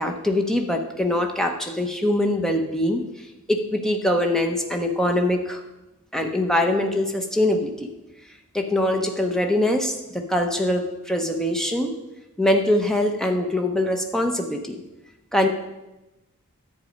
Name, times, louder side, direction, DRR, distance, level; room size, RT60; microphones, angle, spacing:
voice 1, 0.0-3.0 3.5-5.6 6.1-7.9 8.5-11.9 12.4-14.8 15.3-15.5, left 1 dB, ahead, 3 dB, 0.9 m, -23 dB
10.5 x 8.3 x 5.2 m, 0.98 s
head